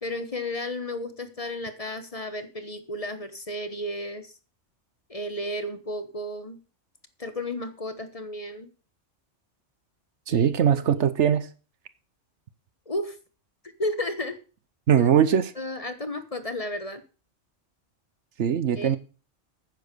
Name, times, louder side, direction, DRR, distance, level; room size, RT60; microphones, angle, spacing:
voice 1, 0.0-4.3 5.1-6.6 7.2-8.7 10.3-11.1 12.9-13.2 13.8-14.4 14.9-15.1 15.6-17.0 18.8-19.0, left 1 dB, 30° left, 10 dB, 1.1 m, -33 dB
voice 2, 10.3-11.5 14.9-15.5 18.4-19.0, right 8 dB, 70° right, 14 dB, 1.1 m, -21 dB
9.7 x 7.1 x 6.7 m, 0.35 s
omnidirectional pair, 1.3 m